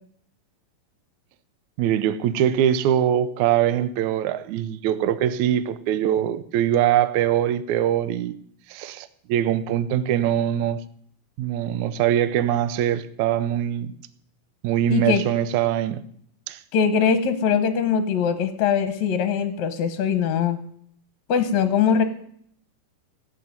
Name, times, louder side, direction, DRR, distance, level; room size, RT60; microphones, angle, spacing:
voice 1, 1.8-8.4 8.7-10.8 11.4-13.9 14.6-16.0 16.5-16.6, right 10 dB, 80° right, 1.7 m, -22 dB
voice 2, 14.9-15.2 16.7-20.6 21.3-22.0, left 7 dB, 65° left, 1.9 m, -21 dB
16.5 x 7.5 x 9.4 m
omnidirectional pair, 4.3 m